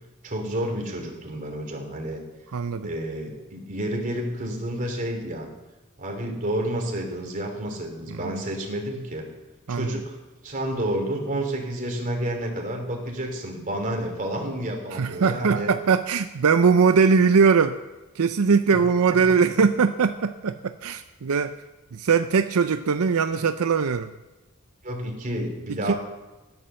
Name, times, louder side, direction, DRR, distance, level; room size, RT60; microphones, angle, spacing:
voice 1, 0.2-2.2 2.8-5.5 6.0-9.2 9.7-10.2 10.4-15.7 18.7-18.8 19.1-19.2 24.8-26.0, right 1 dB, 40° right, 1 dB, 3.2 m, -30 dB
voice 2, 2.5-2.9 8.2-8.4 9.7-10.0 14.9-17.8 18.2-21.6 21.9-24.1 25.9-26.0, right 5 dB, 85° right, 9 dB, 0.5 m, -21 dB
15.0 x 11.0 x 6.9 m, 1.1 s
head